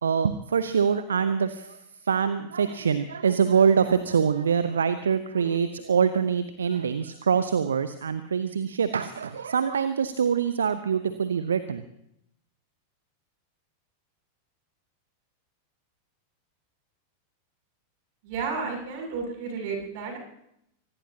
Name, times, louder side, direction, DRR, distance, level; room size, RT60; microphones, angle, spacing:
voice 1, 0.0-11.9, right 6 dB, 70° right, 12 dB, 0.8 m, -24 dB
voice 2, 18.2-20.2, right 5 dB, 50° right, 2 dB, 7.4 m, -32 dB
24.5 x 20.0 x 2.9 m, 0.76 s
figure-of-eight pair, 90°, 0 cm